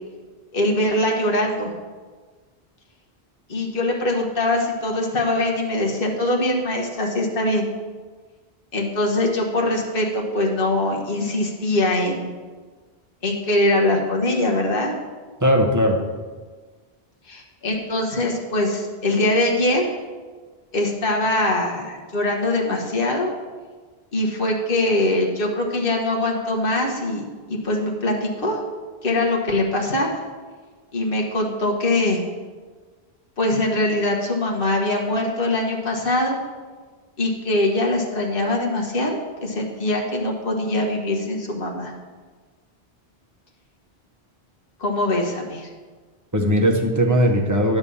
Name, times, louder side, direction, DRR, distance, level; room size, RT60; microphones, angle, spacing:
voice 1, 0.5-1.7 3.5-7.7 8.7-12.3 13.2-14.9 17.3-19.8 20.7-23.3 24.1-28.6 29.0-30.1 30.9-32.2 33.4-36.4 37.2-41.9 44.8-45.7, left 1 dB, 60° left, -1 dB, 1.4 m, -22 dB
voice 2, 15.4-16.0 46.3-47.8, equal, 20° right, 1 dB, 0.9 m, -18 dB
9.7 x 3.5 x 7.0 m, 1.4 s
omnidirectional pair, 1.1 m